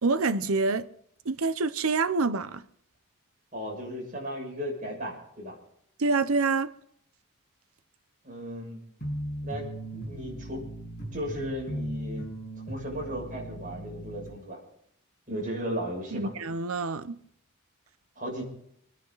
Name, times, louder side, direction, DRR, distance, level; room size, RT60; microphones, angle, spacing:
voice 1, 0.0-0.9 1.2-2.6 6.0-6.7 15.3-15.4 16.1-17.2, right 3 dB, 80° right, 0.8 m, -27 dB
voice 2, 3.5-5.6 8.2-8.8 9.4-10.6 11.1-12.3 12.7-14.6 15.3-16.3 18.2-18.4, equal, 40° right, 6.6 m, -35 dB
sound 1, 9.0-14.3, right 1 dB, 35° left, 7.8 m, -37 dB
28.0 x 9.9 x 4.0 m
head